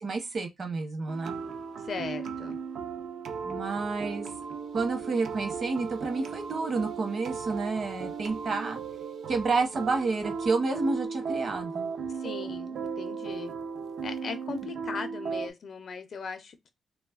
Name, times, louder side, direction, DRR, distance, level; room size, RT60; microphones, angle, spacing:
voice 1, 0.0-1.4 3.4-4.3 4.7-8.8 9.3-11.9 14.6-14.7, right 3 dB, 40° right, 0.8 m, -30 dB
sound 1, 1.1-15.5, right 6 dB, 70° right, 0.4 m, -36 dB
voice 2, 1.9-2.6 12.2-13.5 14.0-16.7, left 5 dB, 50° left, 0.4 m, -38 dB
3.1 x 2.3 x 2.2 m
wide cardioid pair, 165°, 0 cm